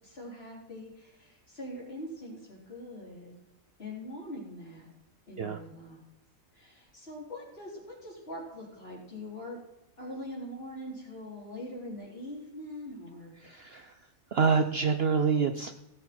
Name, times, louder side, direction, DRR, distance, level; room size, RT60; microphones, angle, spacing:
voice 1, 0.0-3.3 3.8-4.9 5.3-6.0 6.5-9.6 10.0-13.3, left 1 dB, 40° left, -4 dB, 4.2 m, -42 dB
voice 2, 13.4-14.0 14.3-15.7, right 5 dB, 55° right, 8 dB, 0.8 m, -27 dB
17.5 x 8.1 x 4.3 m, 0.95 s
omnidirectional pair, 1.5 m